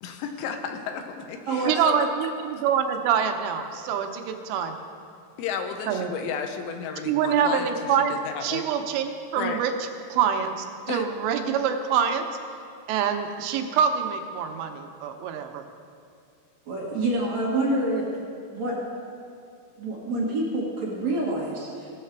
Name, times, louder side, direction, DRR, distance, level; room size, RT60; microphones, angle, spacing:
voice 1, 0.0-2.1 5.4-8.6 9.4-9.6 10.9-11.1, left 6 dB, 85° left, 5 dB, 3.0 m, -33 dB
voice 2, 1.7-4.8 5.9-6.1 7.1-8.2 8.4-9.7 10.1-12.3 12.9-15.6, right 7 dB, 90° right, 5 dB, 2.9 m, -25 dB
voice 3, 16.7-18.1 18.5-18.8 19.8-21.9, right 2 dB, 55° right, -4 dB, 2.2 m, -27 dB
18.5 x 6.6 x 4.5 m, 2.4 s
omnidirectional pair, 5.0 m